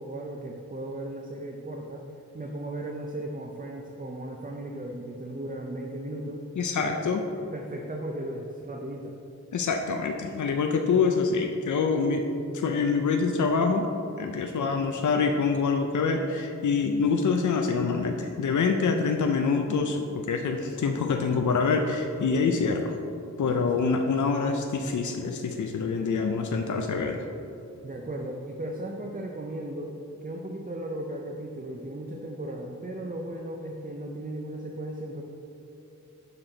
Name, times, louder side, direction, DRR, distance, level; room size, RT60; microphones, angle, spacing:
voice 1, 0.0-2.0 2.3-6.4 6.7-6.9 7.4-9.1 23.6-23.7 27.8-35.2, right 1 dB, 30° right, 1 dB, 0.5 m, -36 dB
voice 2, 6.6-7.2 9.5-12.3 12.5-13.9 14.2-22.9 23.4-27.2, left 5 dB, 75° left, 4 dB, 0.5 m, -26 dB
6.8 x 5.7 x 3.9 m, 2.9 s
wide cardioid pair, 60°, 30 cm